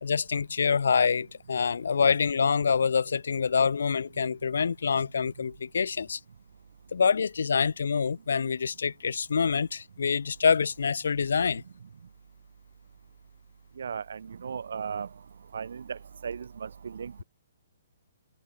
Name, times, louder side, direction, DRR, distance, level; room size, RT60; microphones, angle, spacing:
voice 1, 0.0-6.2 6.9-11.6, left 6 dB, 80° left, 1.7 m, -26 dB
voice 2, 11.5-11.9 13.7-15.2 15.5-17.2, right 6 dB, 65° right, 3.4 m, -37 dB
hypercardioid pair, 180°, 0 cm